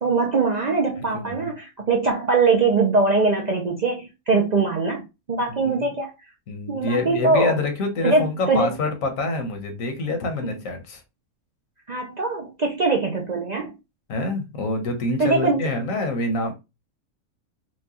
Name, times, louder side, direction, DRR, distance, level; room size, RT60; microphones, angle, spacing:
voice 1, 0.0-5.0 5.3-6.1 6.7-7.5 8.0-8.8 10.4-10.5 11.9-13.8 15.2-15.6, right 3 dB, 50° right, 0.5 m, -22 dB
voice 2, 0.9-1.5 5.6-5.9 6.5-11.0 14.1-16.5, left 2 dB, 75° left, 1.3 m, -26 dB
4.5 x 2.3 x 2.8 m
omnidirectional pair, 1.4 m